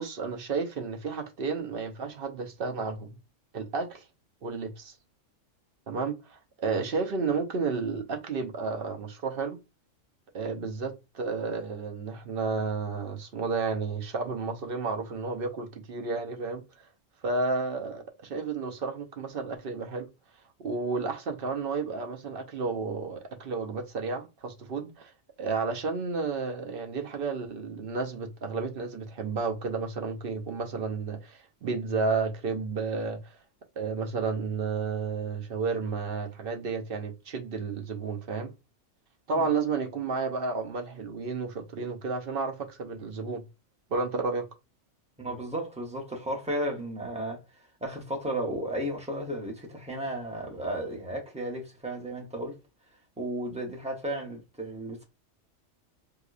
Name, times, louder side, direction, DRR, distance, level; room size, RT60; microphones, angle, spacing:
voice 1, 0.0-3.1 3.5-4.0 4.4-4.9 5.9-9.6 10.3-16.6 17.2-20.1 20.6-25.1 25.4-33.3 33.8-38.5 39.3-43.4 43.9-44.4, right 4 dB, 55° right, 0.7 m, -32 dB
voice 2, 45.2-47.4 47.8-52.6 53.2-55.0, right 1 dB, 5° right, 0.7 m, -34 dB
4.7 x 2.3 x 2.4 m
omnidirectional pair, 1.3 m